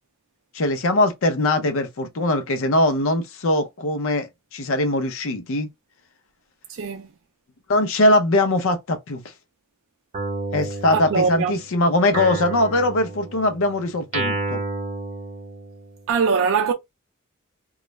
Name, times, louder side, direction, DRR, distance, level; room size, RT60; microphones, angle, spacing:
voice 1, 0.5-5.7 7.7-9.2 10.5-14.6, left 1 dB, 65° left, 0.6 m, -21 dB
voice 2, 6.7-7.1 10.9-11.5 16.1-16.7, right 5 dB, 60° right, 0.4 m, -22 dB
Guitar, 10.1-11.6 12.1-16.0, right 2 dB, 35° right, 0.7 m, -31 dB
2.3 x 2.0 x 3.0 m
head